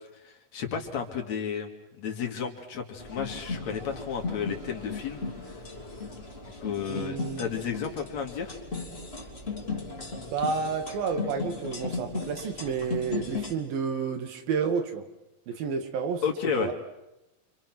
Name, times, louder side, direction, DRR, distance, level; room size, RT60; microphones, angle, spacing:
voice 1, 0.1-1.7 2.0-5.2 6.6-8.6 16.2-16.7, left 7 dB, 55° left, 3 dB, 3.2 m, -32 dB
sound 1, 3.0-13.5, left 4 dB, 20° left, 3.1 m, -36 dB
voice 2, 6.9-7.5 10.3-15.0 15.5-16.2 16.6-16.7, right 5 dB, 85° right, 7 dB, 3.8 m, -30 dB
29.0 x 27.0 x 6.1 m, 0.94 s
omnidirectional pair, 4.0 m